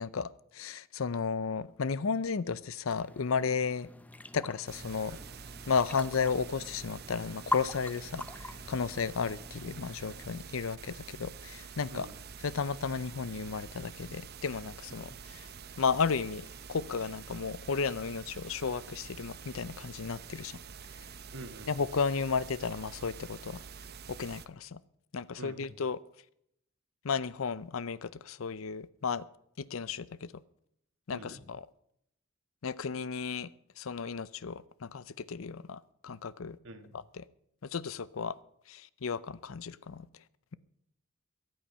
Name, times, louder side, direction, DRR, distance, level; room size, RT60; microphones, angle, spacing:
voice 1, 0.0-3.9 4.3-5.2 5.7-12.1 12.4-15.1 15.8-20.6 21.7-23.6 24.1-24.8 25.1-26.0 27.0-29.2 29.6-30.3 31.1-31.6 32.6-33.5 33.8-36.6 37.2-37.3 37.6-38.4 38.7-40.1, left 5 dB, 85° left, 0.6 m, -33 dB
sound 1, 2.9-10.3, left 1 dB, 10° left, 0.6 m, -42 dB
sound 2, 4.7-24.5, right 6 dB, 55° right, 0.8 m, -47 dB
voice 2, 21.3-21.7 25.4-25.7 31.1-31.4 36.6-36.9, right 2 dB, 75° right, 1.7 m, -47 dB
22.5 x 8.8 x 5.6 m
head